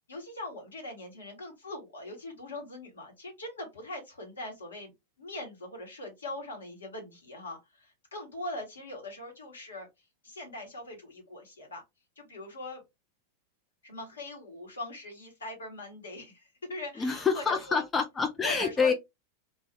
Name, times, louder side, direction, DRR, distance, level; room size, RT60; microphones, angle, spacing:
voice 1, 0.1-4.9 5.2-9.9 10.2-11.8 12.2-12.8 13.8-17.8 18.4-18.9, left 2 dB, 70° left, 1.2 m, -41 dB
voice 2, 17.0-18.9, left 5 dB, 15° left, 0.4 m, -27 dB
2.4 x 2.3 x 3.0 m
figure-of-eight pair, 90°, 0 cm